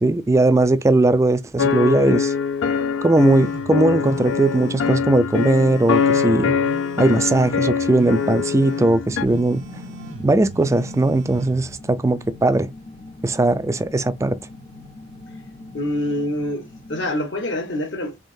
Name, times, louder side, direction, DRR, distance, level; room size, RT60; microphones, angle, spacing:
voice 1, 0.0-2.3 3.0-6.6 7.0-9.6 10.2-12.7 13.2-14.4, right 2 dB, 15° right, 0.3 m, -19 dB
sound 1, 1.6-9.2, left 6 dB, 80° left, 0.4 m, -23 dB
sound 2, 3.2-11.7, right 2 dB, 75° right, 0.6 m, -38 dB
sound 3, 9.1-17.1, left 2 dB, 35° left, 0.6 m, -41 dB
voice 2, 15.7-18.2, left 1 dB, 65° left, 1.3 m, -26 dB
3.6 x 3.5 x 2.6 m
head